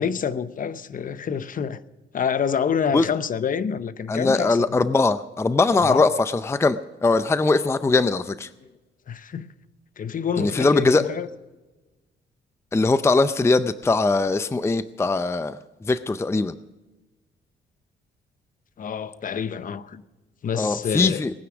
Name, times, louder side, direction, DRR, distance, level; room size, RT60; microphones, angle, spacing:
voice 1, 0.0-1.8 2.1-4.6 5.8-6.0 9.1-9.5 10.0-11.3 18.8-20.0 20.4-21.2, left 7 dB, 45° left, 0.8 m, -27 dB
voice 2, 4.1-8.5 10.4-11.0 12.7-16.5 20.6-21.3, left 3 dB, 15° left, 0.5 m, -21 dB
20.0 x 9.5 x 6.1 m
cardioid pair, 90°, 20 cm